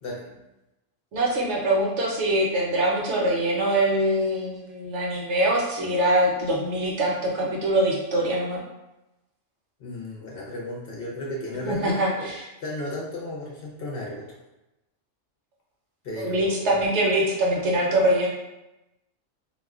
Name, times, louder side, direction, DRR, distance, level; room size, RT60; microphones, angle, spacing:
voice 1, 0.0-0.4 9.8-12.3 12.6-14.2 16.0-16.6, left 1 dB, 60° left, -4 dB, 0.7 m, -34 dB
voice 2, 1.1-8.6 11.6-12.4 16.2-18.3, right 1 dB, 70° right, -2 dB, 0.9 m, -23 dB
2.3 x 2.1 x 3.5 m, 0.97 s
omnidirectional pair, 1.3 m